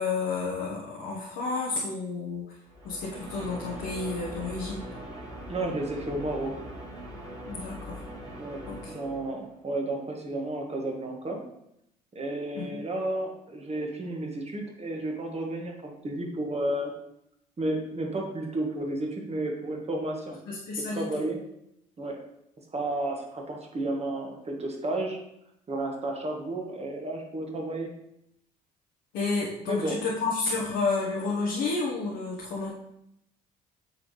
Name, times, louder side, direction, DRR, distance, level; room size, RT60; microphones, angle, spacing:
voice 1, 0.0-2.4 2.8-4.8 7.5-8.0 8.7-8.9 12.5-12.8 20.5-21.2 29.1-32.7, left 4 dB, 65° left, -4 dB, 1.2 m, -31 dB
sound 1, 2.7-9.5, equal, 85° right, 2.0 m, -41 dB
voice 2, 5.5-6.5 8.4-11.4 12.1-16.9 17.6-20.4 20.8-21.4 22.0-22.2 22.7-25.2 25.7-27.9 29.7-30.0, right 1 dB, 30° right, 1 dB, 1.6 m, -32 dB
8.7 x 3.8 x 3.3 m, 0.80 s
hypercardioid pair, 55°, 20 cm